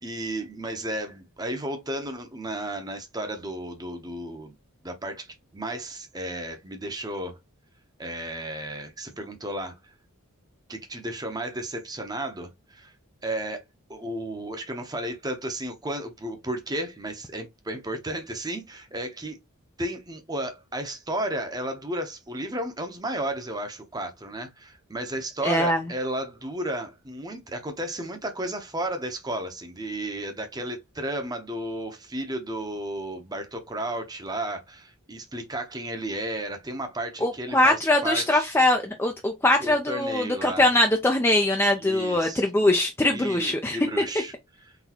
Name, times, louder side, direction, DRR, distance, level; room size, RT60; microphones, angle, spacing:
voice 1, 0.0-4.5 4.8-7.4 8.0-9.8 10.7-12.9 13.2-13.6 13.9-19.4 19.8-38.5 39.6-40.7 41.8-42.4 43.1-44.3, right 1 dB, 15° right, 0.7 m, -33 dB
voice 2, 25.4-25.8 37.2-44.0, left 1 dB, 10° left, 0.4 m, -22 dB
4.0 x 3.5 x 2.9 m
head